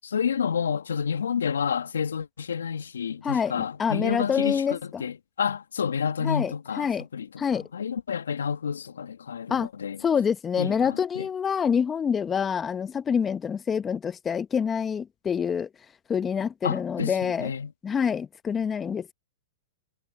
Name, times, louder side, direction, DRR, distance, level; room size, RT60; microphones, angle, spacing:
voice 1, 0.1-10.0 10.6-11.3 16.6-17.7, left 7 dB, 80° left, 2.6 m, -30 dB
voice 2, 3.8-5.0 6.2-7.0 7.4-7.6 9.5-9.7 10.0-15.7 16.1-17.5 17.8-19.1, left 7 dB, 20° left, 1.3 m, -26 dB
hypercardioid pair, 115°, 0 cm